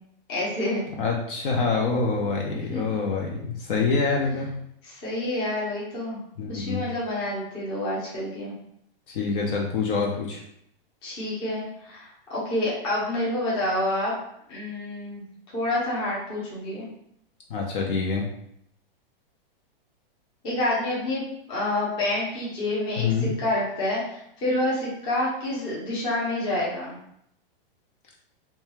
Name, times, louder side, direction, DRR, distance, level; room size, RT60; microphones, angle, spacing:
voice 1, 0.3-0.9 2.5-2.8 4.3-4.4 4.8-6.2 6.5-8.5 11.0-14.1 14.5-15.2 15.5-16.9 20.4-21.2 21.5-27.0, left 1 dB, 15° left, -6 dB, 0.6 m, -28 dB
voice 2, 1.0-4.5 6.4-6.8 9.1-10.4 17.5-18.3 23.0-23.3, left 4 dB, 65° left, -1 dB, 0.6 m, -26 dB
2.6 x 2.2 x 3.0 m, 0.72 s
supercardioid pair, 170°, 29 cm